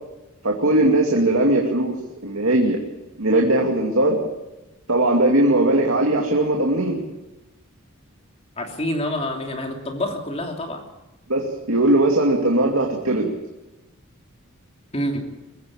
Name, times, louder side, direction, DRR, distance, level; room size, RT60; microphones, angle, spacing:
voice 1, 0.4-2.0 2.2-2.8 3.2-4.2 4.9-7.0 11.3-11.4 11.7-13.3, right 1 dB, 70° right, 0 dB, 2.6 m, -19 dB
voice 2, 8.6-10.8 14.9-15.3, left 1 dB, 30° left, 2 dB, 3.0 m, -27 dB
23.0 x 14.5 x 8.7 m, 1.0 s
head